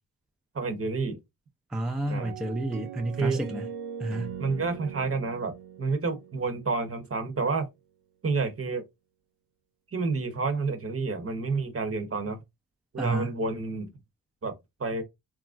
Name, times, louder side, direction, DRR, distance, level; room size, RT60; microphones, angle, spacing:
voice 1, 0.5-1.2 2.1-2.3 3.2-3.4 4.4-7.7 8.2-8.8 9.9-12.4 12.9-13.9 14.4-14.5 14.8-15.0, right 4 dB, 35° right, 0.8 m, -29 dB
voice 2, 1.7-3.7 4.0-4.4 13.0-13.3, right 1 dB, ahead, 0.5 m, -30 dB
sound 1, 2.1-7.2, right 8 dB, 90° right, 0.6 m, -41 dB
3.0 x 2.4 x 2.4 m
cardioid pair, 55°, 40 cm